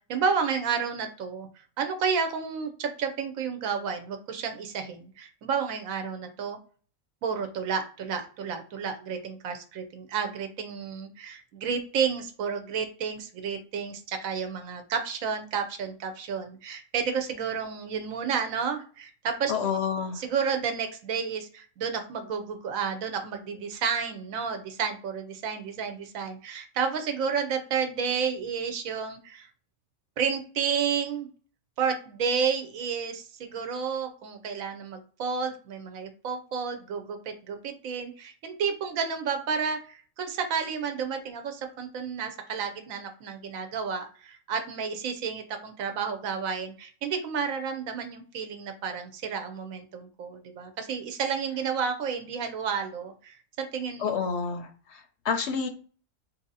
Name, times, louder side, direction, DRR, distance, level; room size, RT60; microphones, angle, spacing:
voice 1, 0.1-1.5 1.8-6.6 7.2-19.5 20.1-29.5 30.2-31.3 31.8-54.1, right 6 dB, 75° right, 6 dB, 1.0 m, -31 dB
voice 2, 19.5-20.2 54.0-55.7, left 6 dB, 65° left, 6 dB, 0.7 m, -29 dB
2.7 x 2.7 x 3.9 m, 0.40 s
omnidirectional pair, 1.5 m